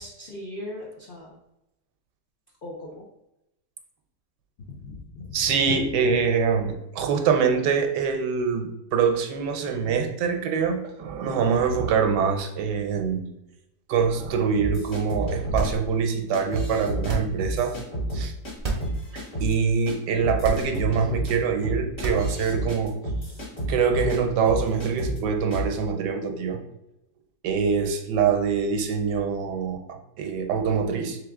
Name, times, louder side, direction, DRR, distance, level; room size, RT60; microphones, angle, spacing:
voice 1, 0.0-1.3 2.6-3.0 4.7-5.4, left 1 dB, 70° left, -3 dB, 0.5 m, -39 dB
voice 2, 5.3-13.3 13.9-17.8 18.1-18.3 19.1-22.9 23.6-26.6 27.4-31.2, right 6 dB, 80° right, 4 dB, 1.2 m, -24 dB
sound 1, 14.6-15.7 16.3-17.1 17.4-18.5 18.8-19.5 19.9-20.0 20.2-24.2 24.4-25.2 25.5-25.7, right 1 dB, 50° left, 1.7 m, -30 dB
sound 2, 15.4-16.1 17.0-17.6 18.5-19.0 19.4-19.5 20.3-21.0 21.9-22.6, right 3 dB, 45° right, 0.5 m, -30 dB
3.5 x 3.4 x 3.5 m, 0.87 s
omnidirectional pair, 1.8 m